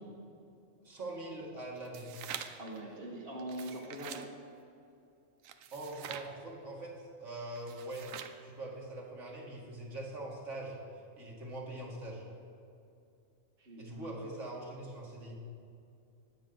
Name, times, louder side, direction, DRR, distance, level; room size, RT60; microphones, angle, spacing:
voice 1, 0.8-2.1 5.7-10.8 11.2-12.3 13.8-15.3, right 2 dB, 65° right, -3 dB, 2.2 m, -43 dB
sound 1, 1.8-2.7 3.4-4.3 5.4-6.3 7.6-8.4, right 9 dB, 90° right, 1.1 m, -45 dB
voice 2, 2.6-4.2 13.6-14.3, right 1 dB, 50° right, -3 dB, 1.4 m, -43 dB
19.5 x 7.3 x 3.9 m, 2.6 s
omnidirectional pair, 1.3 m